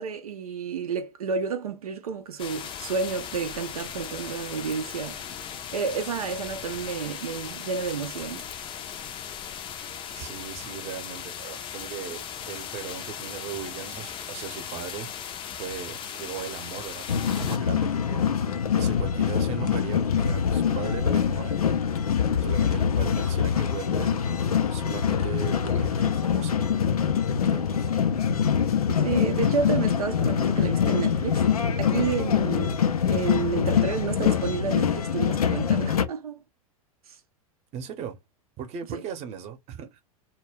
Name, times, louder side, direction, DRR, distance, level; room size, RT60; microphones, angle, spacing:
voice 1, 0.0-8.5 28.9-31.5 31.8-36.4 37.1-37.2 38.9-39.0, right 6 dB, 85° right, 0.5 m, -31 dB
sound 1, 2.4-17.6, left 8 dB, 25° left, 0.4 m, -38 dB
voice 2, 10.1-18.2 18.7-21.8 22.4-24.1 24.7-26.9 27.5-28.0 37.7-38.2 38.6-40.0, right 8 dB, 35° right, 0.8 m, -38 dB
sound 2, 15.7-25.9, left 7 dB, 70° left, 0.8 m, -32 dB
sound 3, 17.1-36.0, left 7 dB, 90° left, 0.4 m, -24 dB
2.2 x 2.2 x 3.3 m
hypercardioid pair, 100°, 19 cm